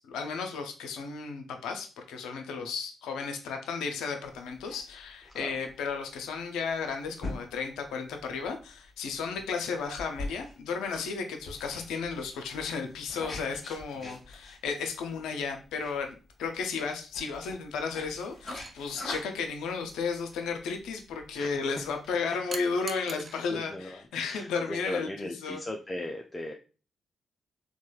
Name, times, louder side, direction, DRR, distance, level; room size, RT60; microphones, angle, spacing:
voice 1, 0.0-25.6, left 5 dB, 85° left, 5 dB, 0.5 m, -34 dB
voice 2, 2.3-2.7 5.3-5.6 9.3-9.4 14.0-14.2 21.4-21.6 22.1-22.2 23.5-26.5, left 1 dB, 25° left, 1 dB, 0.4 m, -38 dB
sound 1, 4.2-22.1, left 2 dB, 45° left, 1.2 m, -45 dB
sound 2, 18.5-18.7 22.5-23.4 24.8-25.0, right 3 dB, 40° right, 0.4 m, -41 dB
2.9 x 2.2 x 2.3 m, 0.35 s
supercardioid pair, 50°, 0 cm